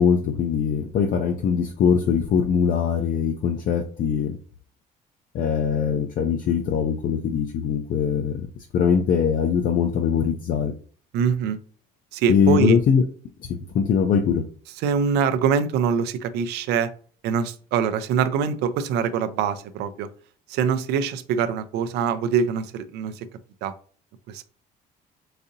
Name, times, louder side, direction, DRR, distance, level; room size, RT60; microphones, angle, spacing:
voice 1, 0.0-4.4 5.3-8.5 8.7-10.7 12.3-13.0 13.4-14.4, left 7 dB, 55° left, 5 dB, 0.4 m, -22 dB
voice 2, 11.1-11.6 12.1-12.8 14.8-16.9 17.2-20.1 20.5-23.3 23.6-23.7 24.3-24.4, right 7 dB, 85° right, 12 dB, 0.4 m, -24 dB
4.0 x 2.7 x 2.6 m, 0.43 s
cardioid pair, 110°, 17 cm